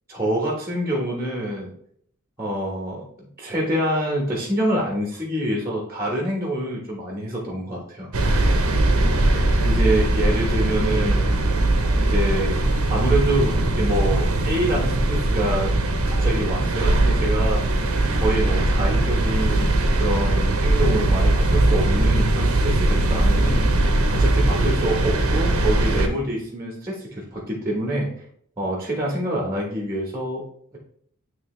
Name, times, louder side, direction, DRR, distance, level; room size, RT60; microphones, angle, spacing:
voice 1, 0.1-1.7 2.4-3.0 3.4-8.1 9.6-11.4 11.9-12.6 12.9-15.7 16.0-17.6 18.1-23.7 24.1-28.2 28.6-30.4, right 1 dB, 15° right, -2 dB, 1.2 m, -26 dB
sound 1, 8.1-26.1, right 2 dB, 70° right, 0.9 m, -20 dB
9.5 x 3.4 x 3.2 m, 0.65 s
head